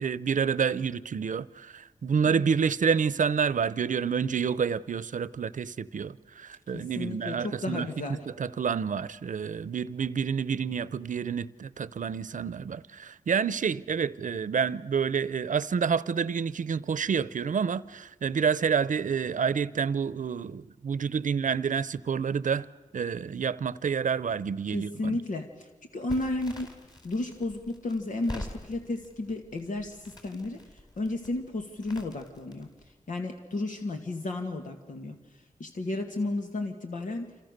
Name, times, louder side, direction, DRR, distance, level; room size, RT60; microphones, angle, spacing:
voice 1, 0.0-7.9 8.4-22.7 22.9-25.2, right 6 dB, 80° right, 0.8 m, -28 dB
voice 2, 6.7-8.2 24.7-26.7 27.0-30.6 31.0-32.7 33.1-35.2 35.6-37.3, left 2 dB, 85° left, 2.1 m, -33 dB
Crackle, 26.1-32.9, left 1 dB, 30° left, 4.7 m, -45 dB
28.0 x 27.5 x 6.7 m
wide cardioid pair, 110°, 13 cm